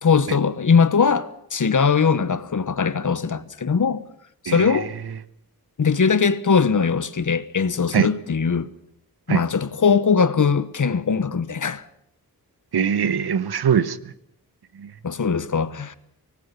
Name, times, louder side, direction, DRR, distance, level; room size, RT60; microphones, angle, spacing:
voice 1, 0.0-4.1 4.4-4.9 5.8-8.7 9.3-11.8 15.0-16.0, left 5 dB, 55° left, 1.2 m, -20 dB
voice 2, 4.5-4.8 7.9-8.1 9.3-9.4 12.7-14.0 14.8-14.9, right 7 dB, 85° right, 1.1 m, -21 dB
25.0 x 19.0 x 6.9 m
wide cardioid pair, 110°, 38 cm